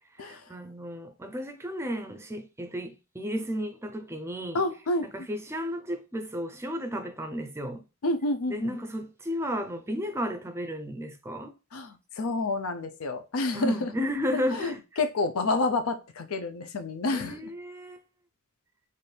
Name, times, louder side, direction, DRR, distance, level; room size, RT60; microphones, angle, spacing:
voice 1, 0.1-4.6 5.1-7.8 8.5-11.5 13.5-14.8 17.1-18.0, equal, 10° right, 0.4 m, -33 dB
voice 2, 4.5-5.3 8.0-8.8 11.7-13.9 14.5-17.4, left 2 dB, 90° left, 0.5 m, -29 dB
4.4 x 2.5 x 3.2 m
head